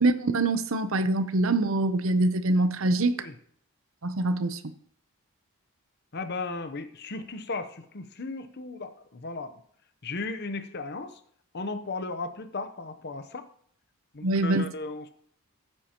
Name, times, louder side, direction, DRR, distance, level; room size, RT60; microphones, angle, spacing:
voice 1, 0.0-3.3 4.0-4.7 14.2-14.7, right 2 dB, 65° right, 0.8 m, -24 dB
voice 2, 6.1-9.6 10.0-11.2 11.5-13.4 14.1-15.1, left 3 dB, 50° left, 0.9 m, -36 dB
15.5 x 8.9 x 3.0 m
head